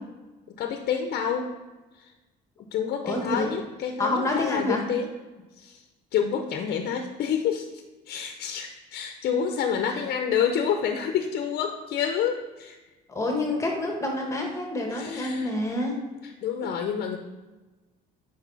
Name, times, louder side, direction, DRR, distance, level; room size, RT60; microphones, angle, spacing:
voice 1, 0.5-1.5 1.9-2.1 2.7-5.1 5.6-5.8 6.1-12.8 14.9-15.5 16.2-17.2, left 7 dB, 65° left, 5 dB, 0.7 m, -28 dB
voice 2, 3.0-3.4 4.0-4.8 9.9-10.1 13.1-16.0, left 2 dB, 15° left, 1 dB, 1.4 m, -27 dB
8.1 x 4.9 x 4.0 m, 1.2 s
cardioid pair, 110°, 17 cm